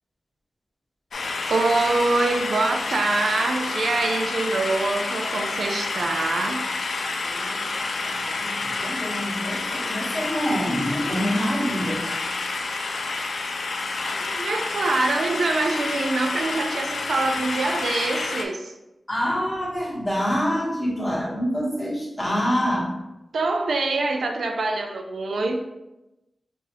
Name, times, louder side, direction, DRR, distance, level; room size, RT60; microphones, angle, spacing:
sound 1, 1.1-18.4, left 3 dB, 85° left, 0.4 m, -29 dB
voice 1, 1.5-6.6 14.1-18.7 23.3-25.6, right 3 dB, 90° right, 3 dB, 0.4 m, -24 dB
voice 2, 7.2-12.2 19.1-22.9, equal, 15° left, -6 dB, 1.3 m, -27 dB
4.6 x 2.6 x 2.9 m, 0.98 s
wide cardioid pair, 85°, 0 cm